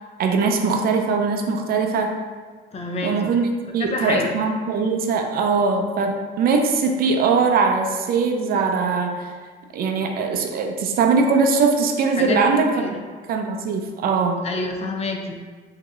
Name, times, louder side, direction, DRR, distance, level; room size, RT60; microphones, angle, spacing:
voice 1, 0.2-2.1 3.0-3.5 3.7-9.3 9.7-12.9 13.3-14.4, right 4 dB, 55° right, 3 dB, 0.5 m, -21 dB
voice 2, 2.7-3.4 3.8-4.3 12.2-13.0 14.4-15.5, left 3 dB, 35° left, 2 dB, 0.5 m, -28 dB
4.9 x 2.7 x 2.3 m, 1.5 s
cardioid pair, 115°, 18 cm